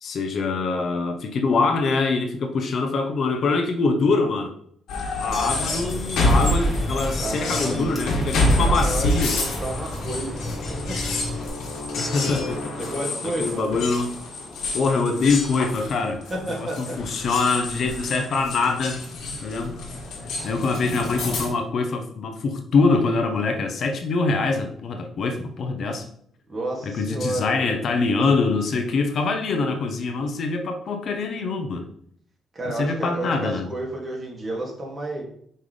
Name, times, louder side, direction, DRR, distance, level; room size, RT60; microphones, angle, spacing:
voice 1, 0.0-4.5 5.2-9.4 11.9-12.7 13.2-14.2 14.7-16.2 16.5-19.0 19.4-19.9 20.4-26.0 26.8-31.9 32.7-33.7, left 4 dB, 60° left, 5 dB, 0.8 m, -24 dB
sound 1, 4.9-21.5, left 1 dB, 75° left, 1.7 m, -27 dB
sound 2, 5.3-11.5, left 1 dB, 15° left, 1.6 m, -33 dB
voice 2, 7.2-7.8 8.6-11.0 12.8-13.6 16.3-17.0 26.5-27.8 32.5-35.2, right 2 dB, 25° right, -3 dB, 2.3 m, -31 dB
5.6 x 5.5 x 3.3 m, 0.64 s
cardioid pair, 90°, 0 cm